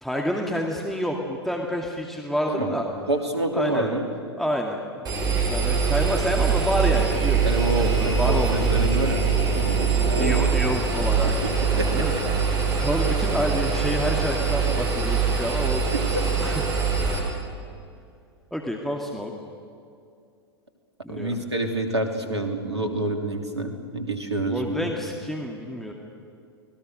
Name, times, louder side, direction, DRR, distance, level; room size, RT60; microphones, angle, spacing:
voice 1, 0.0-2.8 3.5-3.9 4.4-7.5 7.8-8.8 10.2-12.1 12.5-16.6 18.5-19.3 21.0-21.4 24.4-25.9, equal, ahead, 0 dB, 2.0 m, -29 dB
voice 2, 3.1-4.1 7.4-9.2 9.6-10.4 11.4-12.2 15.9-16.2 21.1-24.9, right 1 dB, 85° right, 5 dB, 2.9 m, -28 dB
Engine, 5.0-17.2, right 5 dB, 25° right, 6.1 m, -23 dB
30.0 x 20.5 x 6.6 m, 2.4 s
figure-of-eight pair, 95°, 14 cm